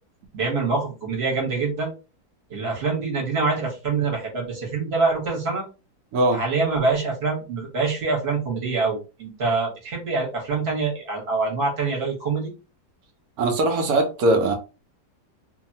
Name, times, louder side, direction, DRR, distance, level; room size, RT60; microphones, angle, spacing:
voice 1, 0.3-1.9 2.5-5.6 6.3-12.5, right 4 dB, 40° right, 1.2 m, -25 dB
voice 2, 13.4-14.5, right 2 dB, 70° right, 1.2 m, -20 dB
2.7 x 2.6 x 2.7 m
omnidirectional pair, 1.8 m